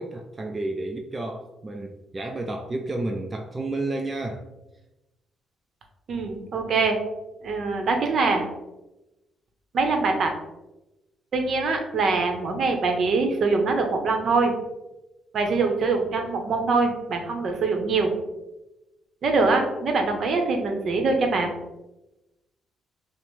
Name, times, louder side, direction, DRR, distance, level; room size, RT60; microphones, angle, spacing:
voice 1, 0.0-4.5, right 2 dB, 25° right, 2 dB, 0.4 m, -31 dB
voice 2, 6.1-7.0 7.4-8.5 9.7-10.3 11.3-14.5 15.3-18.1 19.2-21.5, right 3 dB, 55° right, 4 dB, 0.7 m, -23 dB
5.8 x 2.0 x 3.1 m, 0.99 s
cardioid pair, 90°, 0 cm